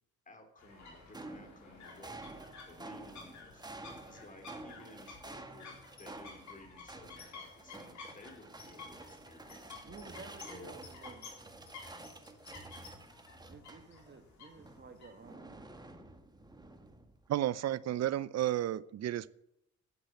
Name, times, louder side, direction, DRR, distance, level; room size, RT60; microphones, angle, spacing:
voice 1, 0.3-2.2 2.7-3.6 4.0-9.6 10.5-10.7, left 2 dB, 25° left, 5 dB, 3.5 m, -56 dB
sound 1, 0.6-15.3, left 4 dB, 70° left, 4.1 m, -53 dB
sound 2, 0.8-14.2 14.5-17.3, right 2 dB, 15° right, 1.6 m, -50 dB
voice 2, 9.8-11.3 13.5-15.7, right 4 dB, 35° right, 7 dB, 1.8 m, -53 dB
voice 3, 17.3-19.3, right 12 dB, 60° right, 19 dB, 0.7 m, -32 dB
11.0 x 7.8 x 8.2 m, 0.81 s
cardioid pair, 90°, 30 cm